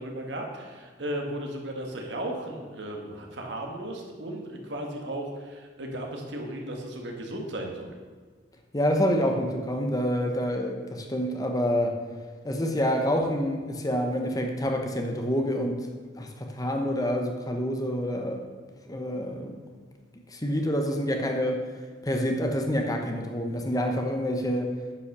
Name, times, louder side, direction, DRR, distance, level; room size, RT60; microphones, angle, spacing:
voice 1, 0.0-7.9, right 1 dB, 65° right, 1 dB, 1.7 m, -35 dB
voice 2, 8.7-12.0 12.4-15.9 16.2-18.5 18.9-19.6 20.3-21.6 22.0-24.7, equal, 20° left, 3 dB, 0.9 m, -27 dB
9.9 x 5.8 x 6.7 m, 1.5 s
head